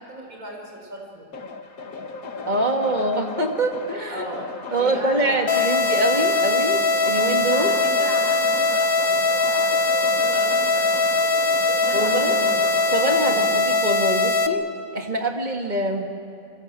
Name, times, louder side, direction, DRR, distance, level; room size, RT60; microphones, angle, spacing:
voice 1, 0.0-1.3 4.1-4.5 4.8-6.1 7.5-9.8 10.1-12.7 13.1-13.6, right 1 dB, 85° right, 1 dB, 5.1 m, -37 dB
sound 1, 1.3-13.3, left 4 dB, 90° left, 1.9 m, -35 dB
voice 2, 2.5-4.3 4.7-7.8 11.9-12.4 12.9-14.7 14.9-16.0, right 2 dB, 30° right, 3 dB, 2.1 m, -24 dB
sound 2, 5.5-14.5, left 3 dB, 45° left, 1.2 m, -21 dB
28.0 x 23.5 x 7.6 m, 2.4 s
omnidirectional pair, 1.5 m